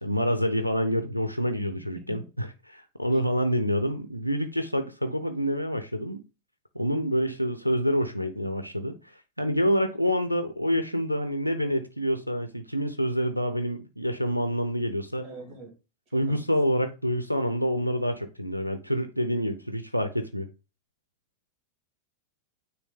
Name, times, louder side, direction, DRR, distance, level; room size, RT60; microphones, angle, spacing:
voice 1, 0.0-6.2 6.7-15.2 16.1-20.5, equal, 90° right, 0.6 m, -27 dB
voice 2, 15.2-15.7 16.1-16.4, right 2 dB, 30° right, 2.2 m, -44 dB
9.4 x 3.3 x 3.7 m
figure-of-eight pair, 90°, 0 cm